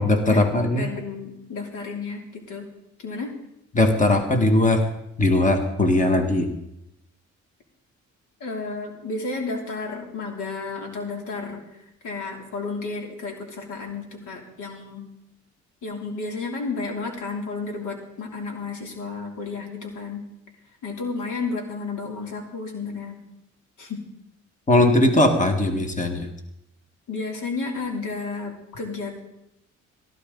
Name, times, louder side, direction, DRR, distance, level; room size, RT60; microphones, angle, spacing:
voice 1, 0.0-0.9 3.7-4.9 5.2-6.5 24.7-26.3, left 1 dB, 25° left, 4 dB, 1.9 m, -19 dB
voice 2, 0.8-2.7 3.0-3.3 8.4-11.6 12.0-15.0 15.8-20.2 20.8-23.2 23.8-24.1 27.1-29.2, left 4 dB, 80° left, 1 dB, 3.2 m, -32 dB
17.5 x 14.0 x 3.9 m, 0.81 s
cardioid pair, 90°, 30 cm